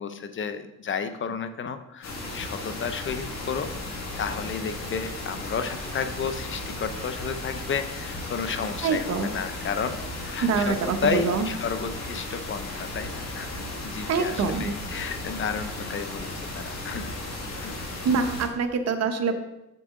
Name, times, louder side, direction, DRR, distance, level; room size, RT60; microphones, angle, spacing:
voice 1, 0.0-17.1 17.6-17.8, left 6 dB, 40° left, 9 dB, 0.6 m, -32 dB
sound 1, 2.0-18.5, left 2 dB, 55° left, 2.0 m, -35 dB
voice 2, 8.8-9.3 10.4-11.5 14.1-14.8 18.0-19.3, right 5 dB, 55° right, 7 dB, 0.9 m, -25 dB
7.2 x 6.9 x 3.7 m, 0.92 s
cardioid pair, 100°, 31 cm